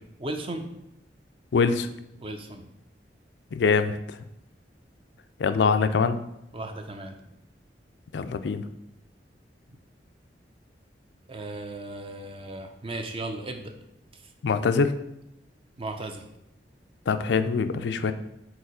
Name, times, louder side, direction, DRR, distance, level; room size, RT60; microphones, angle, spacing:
voice 1, 0.2-0.7 2.2-2.7 6.5-7.2 11.3-13.7 15.8-16.3, right 2 dB, 30° right, 5 dB, 0.6 m, -36 dB
voice 2, 1.5-1.9 3.5-4.2 5.4-6.2 8.1-8.7 14.4-15.0 17.1-18.1, left 5 dB, 80° left, 10 dB, 0.4 m, -24 dB
4.8 x 3.9 x 4.9 m, 0.83 s
head